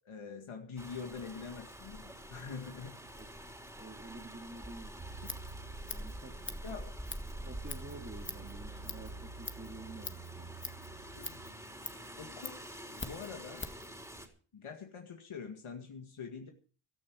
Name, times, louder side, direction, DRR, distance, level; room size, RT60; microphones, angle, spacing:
voice 1, 0.0-3.0 6.6-7.0 11.1-11.4 12.2-12.6 12.9-13.7 14.5-16.5, left 5 dB, 85° left, 2.1 m, -45 dB
Rain, 0.8-14.3, equal, 5° right, 3.7 m, -47 dB
voice 2, 3.8-5.0 5.9-6.8 7.4-10.5, right 2 dB, 20° right, 2.1 m, -49 dB
Scissors, 5.0-13.9, left 3 dB, 25° left, 1.6 m, -46 dB
sound 1, 5.0-11.5, right 4 dB, 40° right, 3.0 m, -50 dB
16.0 x 13.5 x 4.8 m
wide cardioid pair, 95°, 48 cm